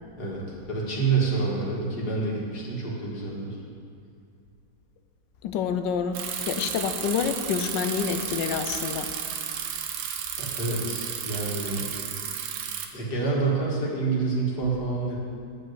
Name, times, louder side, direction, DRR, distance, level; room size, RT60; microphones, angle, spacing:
voice 1, 0.7-3.6 10.4-12.1 12.9-15.2, right 4 dB, 60° left, -4 dB, 2.4 m, -27 dB
voice 2, 5.4-9.1, left 7 dB, 75° left, 9 dB, 1.3 m, -28 dB
Bicycle, 6.1-12.9, right 8 dB, 85° right, 1.5 m, -33 dB
9.9 x 5.5 x 7.7 m, 2.4 s
omnidirectional pair, 2.0 m